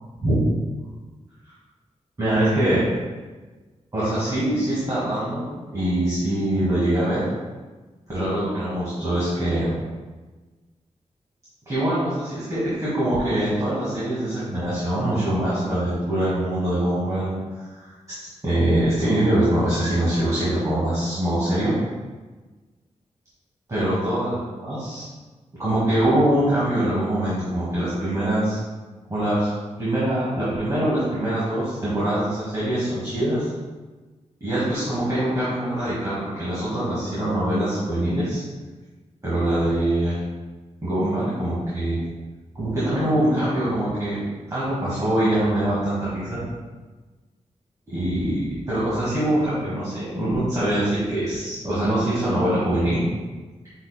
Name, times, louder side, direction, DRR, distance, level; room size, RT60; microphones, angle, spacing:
voice 1, 2.2-2.9 3.9-7.2 8.1-9.6 11.7-17.4 17.7-17.9 18.4-21.7 23.7-25.0 25.5-28.6 29.1-29.5 29.8-33.5 34.4-38.4 39.2-40.2 40.8-42.0 42.6-44.2 44.5-46.4 47.9-53.0, right 1 dB, 25° right, -11 dB, 1.9 m, -23 dB
9.4 x 4.5 x 2.2 m, 1.3 s
wide cardioid pair, 175°, 12 cm